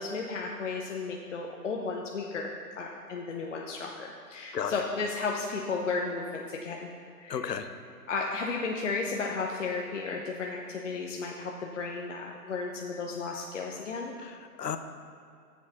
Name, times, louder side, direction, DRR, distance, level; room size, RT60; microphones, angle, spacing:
voice 1, 0.0-6.9 7.2-7.5 8.1-14.1, left 4 dB, 50° left, 0 dB, 0.8 m, -34 dB
voice 2, 7.3-7.7 14.2-14.8, left 7 dB, 80° left, 9 dB, 0.9 m, -34 dB
7.3 x 7.3 x 5.5 m, 2.3 s
hypercardioid pair, 160°, 48 cm